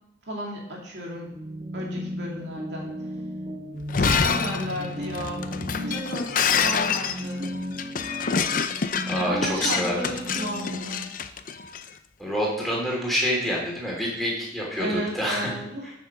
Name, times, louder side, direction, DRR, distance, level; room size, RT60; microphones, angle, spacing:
voice 1, 0.3-1.3 1.7-2.9 4.0-5.4 5.7-7.5 9.2-11.1 14.8-15.9, equal, 65° right, -2 dB, 2.5 m, -34 dB
sound 1, 1.2-11.1, equal, 30° right, 1.0 m, -35 dB
Shatter, 3.8-11.8, left 6 dB, 45° left, 0.6 m, -27 dB
voice 2, 9.1-10.2 12.2-15.5, equal, ahead, -4 dB, 3.1 m, -27 dB
9.2 x 6.5 x 5.9 m, 0.78 s
head